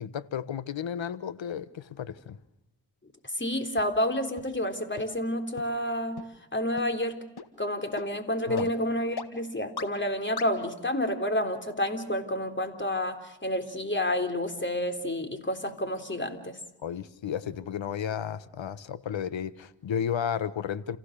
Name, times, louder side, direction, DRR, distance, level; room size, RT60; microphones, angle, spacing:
voice 1, 0.0-2.4 8.5-8.7 16.8-21.0, left 8 dB, 75° left, 16 dB, 1.2 m, -33 dB
voice 2, 3.4-6.2 6.5-7.2 7.6-16.6, left 1 dB, 25° left, 7 dB, 3.7 m, -29 dB
sound 1, 3.8-3.9 4.4-4.5 5.0-5.1 5.6-5.7 6.2-6.3 6.8-6.9 7.4-7.5 8.0-8.1 8.6-8.7 9.2-9.3 9.8-9.9 10.4-10.5, left 6 dB, 55° left, 1.9 m, -37 dB
29.5 x 16.0 x 6.7 m, 0.92 s
cardioid pair, 50°, 45 cm